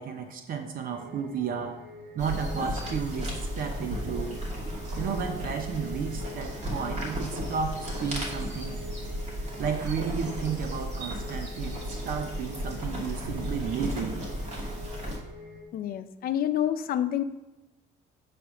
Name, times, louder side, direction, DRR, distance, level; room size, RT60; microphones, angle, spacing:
voice 1, 0.0-1.8 2.1-4.4 5.0-8.8 9.6-14.2, right 6 dB, 60° right, 6 dB, 0.8 m, -33 dB
sound 1, 0.9-15.6, equal, 75° right, 2.0 m, -46 dB
sound 2, 2.2-15.2, equal, 40° right, 2.3 m, -34 dB
voice 2, 15.7-17.2, left 11 dB, 60° left, 10 dB, 0.6 m, -28 dB
8.5 x 3.4 x 6.1 m, 1.0 s
cardioid pair, 110°, 17 cm